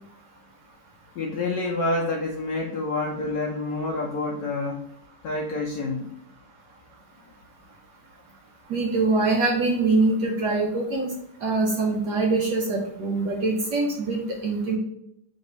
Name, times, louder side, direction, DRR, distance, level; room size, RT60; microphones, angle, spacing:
voice 1, 1.1-4.8 5.2-6.1, left 2 dB, 80° left, 0 dB, 0.8 m, -28 dB
voice 2, 8.7-11.1 11.4-14.8, right 3 dB, 65° right, 0 dB, 1.2 m, -24 dB
3.6 x 3.1 x 4.0 m, 0.76 s
omnidirectional pair, 2.2 m